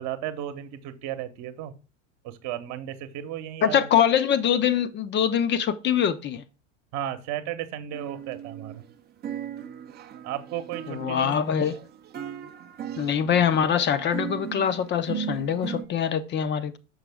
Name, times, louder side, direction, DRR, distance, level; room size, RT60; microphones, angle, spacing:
voice 1, 0.0-1.7 2.2-3.9 6.9-8.8 10.2-11.7, right 11 dB, 45° right, 1.0 m, -34 dB
voice 2, 3.6-6.4 10.9-11.8 13.0-16.8, left 8 dB, 30° left, 0.6 m, -24 dB
sound 1, 7.9-8.9 9.2-15.8, right 9 dB, 25° right, 0.6 m, -37 dB
6.3 x 5.8 x 3.4 m
hypercardioid pair, 85°, 38 cm